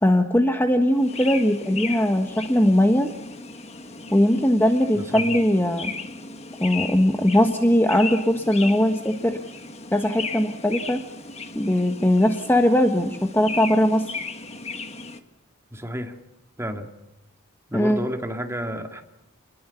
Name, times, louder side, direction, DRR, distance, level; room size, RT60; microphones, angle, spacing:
voice 1, 0.0-3.1 4.1-5.9 6.6-9.4 9.9-11.0 11.5-14.2 17.7-18.0, left 1 dB, 10° left, 5 dB, 1.2 m, -20 dB
sound 1, 0.9-15.2, left 4 dB, 30° left, 1.6 m, -36 dB
voice 2, 4.9-5.3 15.7-16.2 16.6-16.9 17.7-19.0, equal, 10° right, 4 dB, 2.3 m, -31 dB
27.5 x 21.0 x 7.1 m, 0.90 s
head